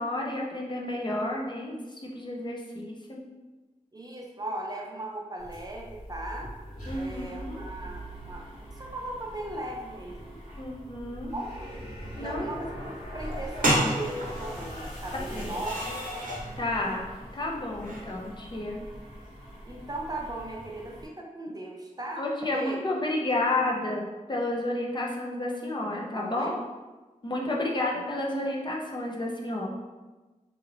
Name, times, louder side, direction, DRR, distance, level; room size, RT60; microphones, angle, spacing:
voice 1, 0.0-3.2 6.9-7.7 10.6-11.3 12.2-12.5 15.1-15.5 15.9-16.0 16.6-18.8 22.2-26.6 27.2-29.7, left 2 dB, 35° left, -2 dB, 0.5 m, -31 dB
voice 2, 3.9-6.5 6.9-10.4 11.3-11.5 12.2-15.9 19.7-22.8 26.1-26.6, right 1 dB, 30° right, -1 dB, 0.4 m, -38 dB
sound 1, 5.4-21.1, equal, 85° left, 1.5 m, -42 dB
sound 2, 13.3-13.4 13.6-16.5 17.8-18.1, right 1 dB, 85° right, 0.7 m, -30 dB
2.9 x 2.7 x 2.5 m, 1.2 s
wide cardioid pair, 80°, 14 cm